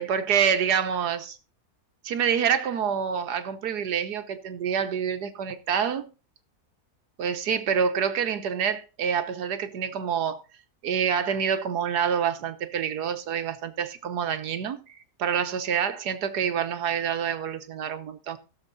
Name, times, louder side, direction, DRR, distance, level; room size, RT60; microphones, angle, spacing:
voice 1, 0.0-1.4 2.0-6.1 7.2-10.4 10.8-14.8 15.2-18.4, right 7 dB, 85° right, 1.6 m, -27 dB
15.5 x 6.9 x 4.0 m
omnidirectional pair, 1.7 m